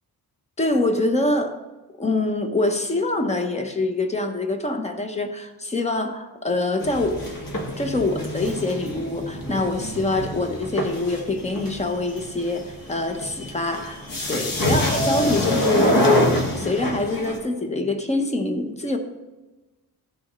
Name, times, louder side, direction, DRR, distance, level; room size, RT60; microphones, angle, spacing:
voice 1, 0.6-1.6 2.0-7.3 7.8-19.0, left 2 dB, 15° left, 6 dB, 0.8 m, -25 dB
sound 1, 6.8-17.4, left 1 dB, 55° left, 1.7 m, -25 dB
15.5 x 6.2 x 3.1 m, 1.1 s
wide cardioid pair, 160°, 40 cm